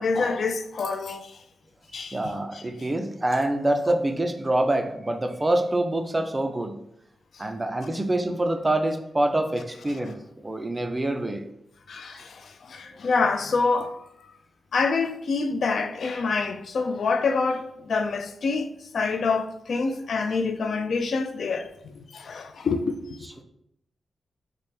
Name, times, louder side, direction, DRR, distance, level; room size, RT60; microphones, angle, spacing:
voice 1, 0.0-1.4 1.9-2.2 2.5-2.6 11.9-14.0 14.7-23.2, left 4 dB, 70° left, 0.3 m, -26 dB
voice 2, 2.1-6.8 7.4-10.1 10.4-11.4 12.1-12.2, right 1 dB, 20° right, 0.4 m, -26 dB
3.3 x 2.0 x 4.2 m
cardioid pair, 95°, 0 cm